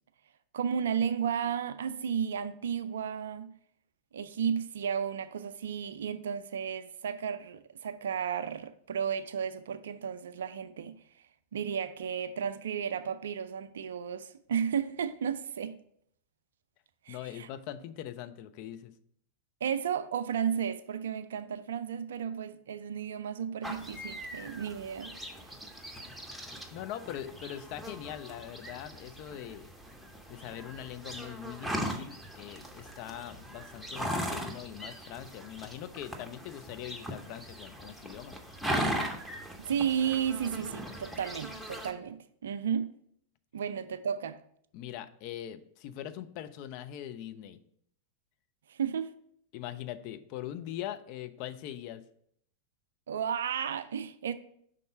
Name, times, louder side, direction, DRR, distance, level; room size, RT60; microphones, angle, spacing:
voice 1, 0.5-3.5 4.1-11.0 11.5-15.8 17.1-17.5 19.6-25.3 39.6-42.9 43.5-44.4 48.7-49.1 53.1-54.3, right 8 dB, 65° right, 0.3 m, -33 dB
voice 2, 17.1-18.9 26.7-29.7 30.3-38.4 44.7-47.6 49.5-52.0, left 11 dB, 45° left, 0.4 m, -42 dB
sound 1, 23.6-41.9, equal, ahead, 0.7 m, -39 dB
5.3 x 3.7 x 5.5 m
figure-of-eight pair, 90°, 0 cm